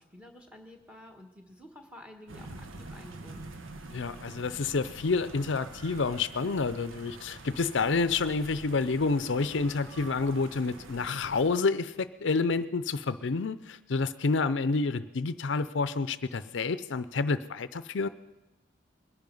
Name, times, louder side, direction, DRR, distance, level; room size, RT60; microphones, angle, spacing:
voice 1, 0.0-3.6, left 1 dB, 5° right, 4 dB, 1.5 m, -51 dB
sound 1, 2.3-11.5, right 2 dB, 90° right, 1.2 m, -46 dB
voice 2, 3.9-18.1, left 4 dB, 70° left, 14 dB, 0.5 m, -29 dB
21.5 x 10.5 x 5.4 m, 1.0 s
head